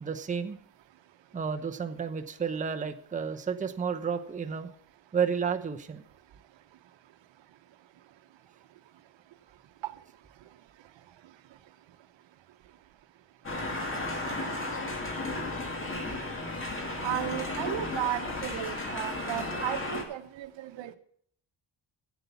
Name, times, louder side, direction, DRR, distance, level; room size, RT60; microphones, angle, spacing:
voice 1, 0.0-0.6 1.3-4.7 5.1-6.0, right 6 dB, 15° right, 5 dB, 0.7 m, -31 dB
sound 1, 13.4-20.0, left 2 dB, 25° left, 2.1 m, -34 dB
voice 2, 17.0-21.0, right 13 dB, 70° right, 10 dB, 0.9 m, -34 dB
8.3 x 8.0 x 6.9 m, 0.64 s
cardioid pair, 115°, 46 cm